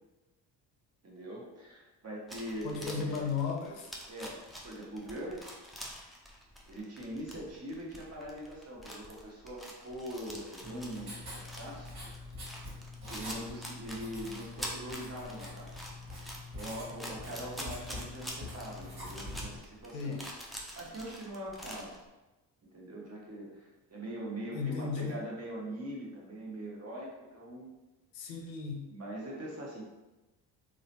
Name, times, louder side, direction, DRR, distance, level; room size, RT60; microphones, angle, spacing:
voice 1, 1.0-3.3 4.1-4.4 4.6-5.6 6.7-12.0 13.1-15.7 16.5-20.2 20.8-22.0 22.6-27.7 28.9-29.9, right 1 dB, 30° right, -3 dB, 1.0 m, -42 dB
sound 1, 2.3-22.0, equal, ahead, 0.3 m, -46 dB
voice 2, 2.6-3.9 19.9-20.3 24.5-25.2 28.1-28.9, left 5 dB, 80° left, 2 dB, 0.5 m, -35 dB
Writing, 10.6-19.6, left 2 dB, 50° right, 1.2 m, -45 dB
3.0 x 2.1 x 2.8 m, 1.1 s
hypercardioid pair, 50°, 49 cm